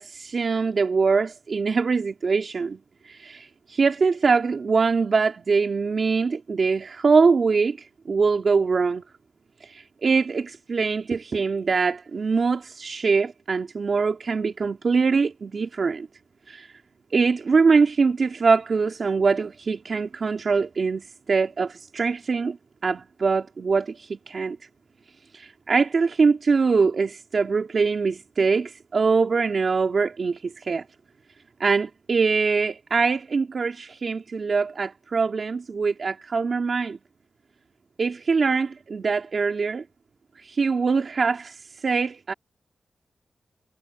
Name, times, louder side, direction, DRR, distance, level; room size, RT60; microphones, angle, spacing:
voice 1, 0.0-2.8 3.0-9.0 9.6-16.1 16.5-16.7 17.1-22.6 22.8-24.6 25.3-30.8 31.6-37.0 38.0-39.8 40.4-42.3, right 4 dB, 50° right, 3.5 m, -23 dB
wide cardioid pair, 140°, 0 cm